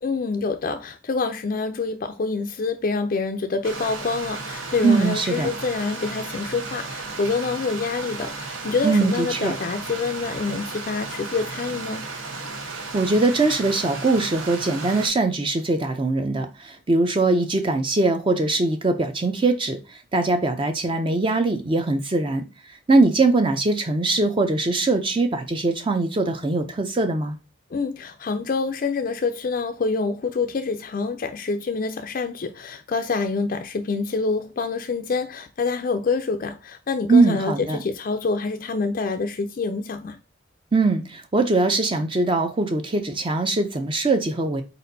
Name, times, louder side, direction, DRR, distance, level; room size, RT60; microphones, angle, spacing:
voice 1, 0.0-12.1 27.7-40.2, left 4 dB, 45° left, 0.3 m, -26 dB
Stream, 3.6-15.1, right 3 dB, 80° right, 1.0 m, -34 dB
voice 2, 4.8-5.5 8.8-9.5 12.7-27.4 37.1-37.8 40.7-44.6, right 3 dB, 25° right, 0.4 m, -22 dB
4.4 x 4.1 x 2.6 m
head